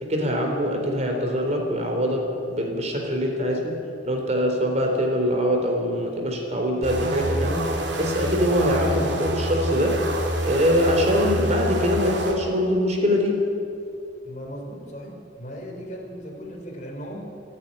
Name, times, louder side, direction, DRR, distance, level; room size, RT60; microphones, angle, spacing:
voice 1, 0.0-3.7 4.1-10.0 10.4-13.4, equal, 40° right, 2 dB, 3.7 m, -23 dB
sound 1, 6.8-12.4, right 1 dB, 70° right, 3.1 m, -27 dB
voice 2, 14.2-17.2, equal, 40° left, 0 dB, 3.7 m, -37 dB
27.5 x 9.7 x 9.9 m, 2.6 s
head